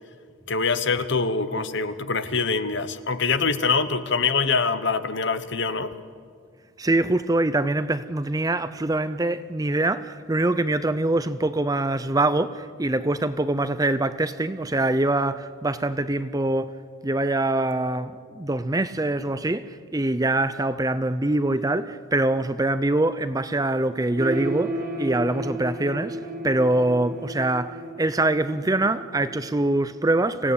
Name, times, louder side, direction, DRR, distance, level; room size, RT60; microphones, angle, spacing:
voice 1, 0.5-5.9, left 4 dB, 55° left, 1.1 m, -24 dB
voice 2, 6.8-16.8 17.0-30.5, right 2 dB, 15° right, 0.5 m, -24 dB
sound 1, 24.2-30.0, right 1 dB, 45° right, 2.2 m, -33 dB
26.0 x 16.5 x 8.5 m
head